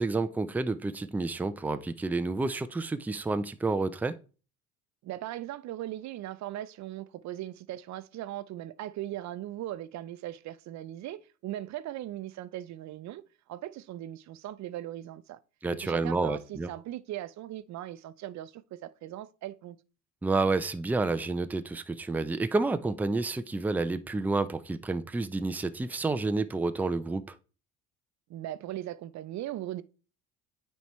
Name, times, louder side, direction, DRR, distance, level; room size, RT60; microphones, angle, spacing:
voice 1, 0.0-4.1 15.6-16.7 20.2-27.3, right 3 dB, 5° right, 0.4 m, -29 dB
voice 2, 5.0-13.2 13.5-15.4 15.7-19.8 28.3-29.8, right 13 dB, 55° right, 0.6 m, -39 dB
9.2 x 4.4 x 3.1 m
supercardioid pair, 95°, 35 cm